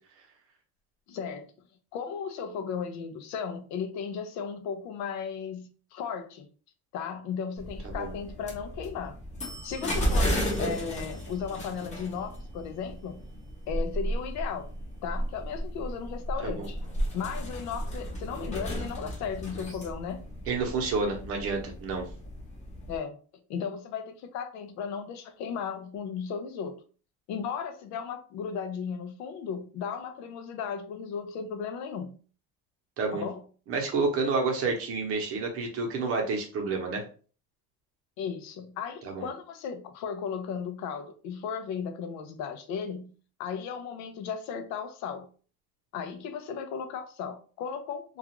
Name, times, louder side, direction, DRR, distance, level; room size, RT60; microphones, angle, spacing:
voice 1, 1.1-1.5 1.9-6.5 6.9-9.2 9.6-13.2 13.7-14.7 15.0-16.8 17.1-20.2 22.9-23.2 23.5-26.8 27.3-32.2 33.1-33.4 38.2-43.1 43.4-45.3 45.9-48.2, left 6 dB, 65° left, 0.5 m, -35 dB
sound 1, 7.6-23.0, equal, 25° left, 0.7 m, -34 dB
voice 2, 20.5-22.0 33.0-33.3 33.7-37.0 39.0-39.3, right 4 dB, 45° right, 0.8 m, -29 dB
2.4 x 2.4 x 2.9 m
cardioid pair, 150°, 31 cm